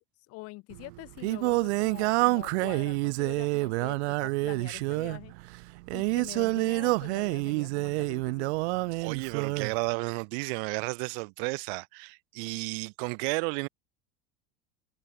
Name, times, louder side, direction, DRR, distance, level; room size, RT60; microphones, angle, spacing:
voice 1, 0.3-5.3 5.9-8.5, left 22 dB, 45° left, 4.5 m, -45 dB
Singing, 0.7-9.8, right 24 dB, 85° right, 0.7 m, -28 dB
voice 2, 8.9-13.7, right 36 dB, 60° right, 2.6 m, -32 dB
cardioid pair, 170°, 33 cm